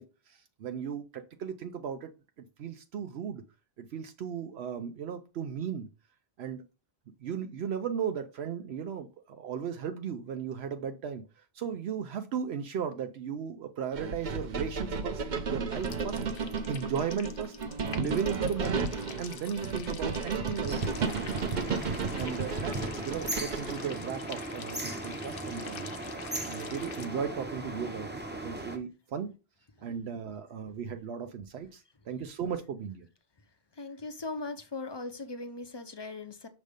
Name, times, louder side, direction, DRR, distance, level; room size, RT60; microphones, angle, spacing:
voice 1, 0.0-2.1 2.6-3.4 3.8-5.9 6.4-6.6 7.2-16.2 16.7-17.5 17.9-21.4 21.9-25.9 26.4-29.3 29.8-33.1, right 7 dB, 75° right, 0.9 m, -36 dB
sound 1, 14.0-23.9, right 4 dB, 50° right, 0.8 m, -33 dB
sound 2, 15.7-27.1, left 7 dB, 65° left, 0.8 m, -47 dB
sound 3, 20.7-28.8, right 1 dB, 10° right, 0.6 m, -38 dB
voice 2, 33.7-36.5, left 3 dB, 30° left, 0.5 m, -39 dB
6.3 x 3.2 x 5.1 m
omnidirectional pair, 1.1 m